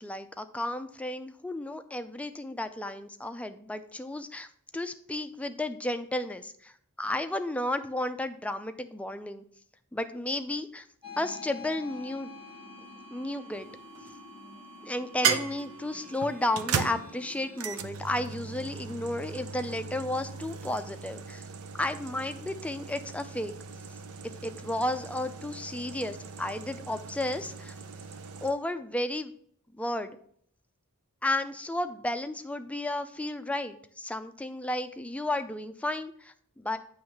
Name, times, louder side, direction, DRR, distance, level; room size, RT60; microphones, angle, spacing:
voice 1, 0.0-4.5 4.7-6.7 7.0-9.4 9.9-10.9 11.2-12.3 13.1-13.7 14.8-21.5 21.8-23.5 24.4-27.7 28.4-29.3 29.8-30.2 31.2-36.8, left 1 dB, 5° left, 9 dB, 0.4 m, -33 dB
sound 1, 11.0-17.8, left 3 dB, 25° right, 2.2 m, -47 dB
sound 2, 13.5-14.2 15.2-28.5, right 6 dB, 80° right, 0.6 m, -37 dB
8.8 x 3.2 x 5.8 m, 0.63 s
head